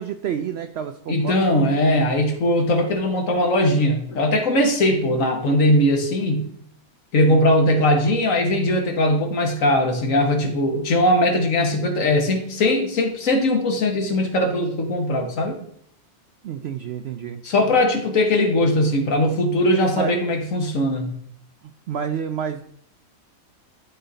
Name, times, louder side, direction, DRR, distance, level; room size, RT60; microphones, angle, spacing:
voice 1, 0.0-1.5 5.1-5.3 7.2-7.5 15.6-15.7 16.4-17.4 19.9-20.1 21.9-22.6, right 8 dB, 75° right, 9 dB, 0.5 m, -29 dB
voice 2, 1.1-6.4 7.1-15.6 17.4-21.1, left 1 dB, 60° left, 4 dB, 1.6 m, -20 dB
12.0 x 4.0 x 3.9 m, 0.66 s
omnidirectional pair, 1.6 m